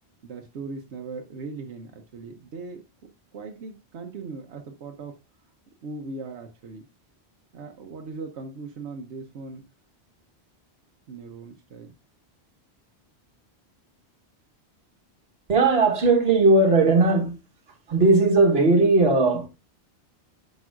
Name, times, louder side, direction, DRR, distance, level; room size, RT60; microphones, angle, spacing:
voice 1, 0.2-2.8 3.3-5.2 5.8-6.9 7.5-9.7 11.1-11.9, right 4 dB, 85° right, 1.1 m, -39 dB
voice 2, 15.5-17.4 17.9-19.5, right 3 dB, 65° right, 1.5 m, -18 dB
10.5 x 5.4 x 2.4 m
omnidirectional pair, 1.1 m